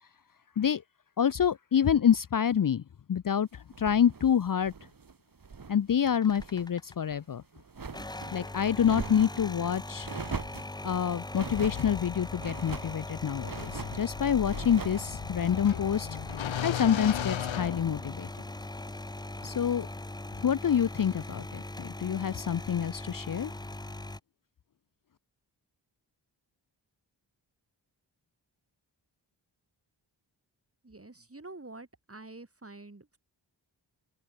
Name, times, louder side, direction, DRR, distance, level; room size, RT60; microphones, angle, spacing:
voice 1, 1.2-2.8 3.1-4.7 5.7-7.4 8.3-10.1 10.8-16.1 16.6-18.3 19.4-19.9 20.4-23.5, left 8 dB, 45° left, 0.7 m, -27 dB
sound 1, 3.7-5.8 6.1-6.7 7.0-8.4 8.8-9.5 10.0-10.7 11.3-11.9 12.4-13.0 13.4-14.0 14.4-15.1, right 5 dB, 50° right, 1.9 m, -41 dB
sound 2, 6.0-7.1 7.8-24.2, left 2 dB, 10° left, 0.7 m, -40 dB
sound 3, 11.5-18.5, left 10 dB, 85° left, 1.0 m, -37 dB
voice 2, 30.8-33.2, right 2 dB, 30° right, 4.5 m, -47 dB
open air
cardioid pair, 45°, 45 cm